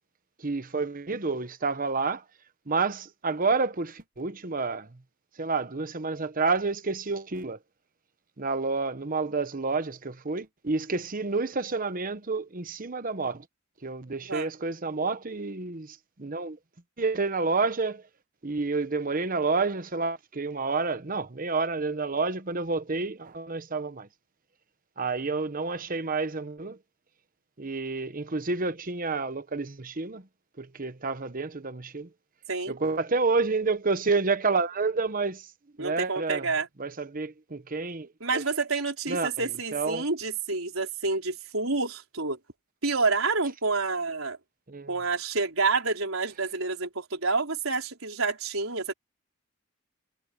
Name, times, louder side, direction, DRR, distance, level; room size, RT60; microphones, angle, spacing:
voice 1, 0.4-2.2 2.7-5.0 5.4-7.6 8.4-13.4 13.8-16.6 17.0-18.0 18.4-24.1 25.0-26.8 27.6-30.2 30.6-32.1 32.7-35.5 35.8-36.5 36.8-38.4 39.1-40.1 44.7-44.9, right 4 dB, 40° right, 1.1 m, -29 dB
voice 2, 35.8-36.7 38.2-42.4 42.8-44.4 44.9-48.9, right 4 dB, 75° right, 4.5 m, -28 dB
head